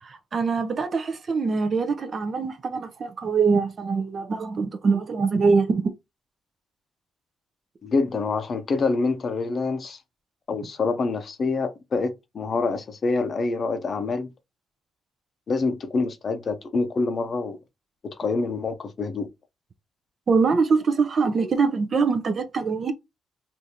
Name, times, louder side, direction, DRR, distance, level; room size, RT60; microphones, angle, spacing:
voice 1, 0.0-5.8 20.3-22.9, right 4 dB, 45° right, 0.5 m, -23 dB
voice 2, 7.8-10.0 10.5-14.3 15.5-17.6 18.0-19.3 21.4-21.5, left 3 dB, 45° left, 0.6 m, -26 dB
3.4 x 2.6 x 2.8 m
cardioid pair, 105°, 0 cm